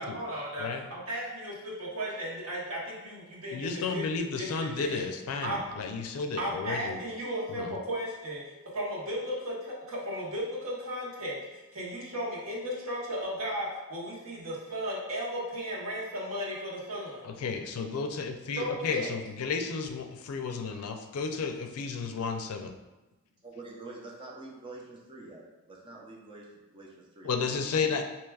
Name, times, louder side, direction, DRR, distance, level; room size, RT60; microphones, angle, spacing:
voice 1, 0.0-4.1 4.4-5.0 5.4-5.7 6.1-8.4 8.7-17.2 18.6-19.1, equal, 70° right, -5 dB, 1.1 m, -35 dB
voice 2, 3.5-7.0 7.6-7.8 17.2-22.7 27.2-28.0, left 5 dB, 85° left, 5 dB, 0.4 m, -33 dB
voice 3, 23.4-28.0, right 2 dB, 25° right, -2 dB, 0.6 m, -47 dB
4.6 x 2.9 x 2.3 m, 1.1 s
head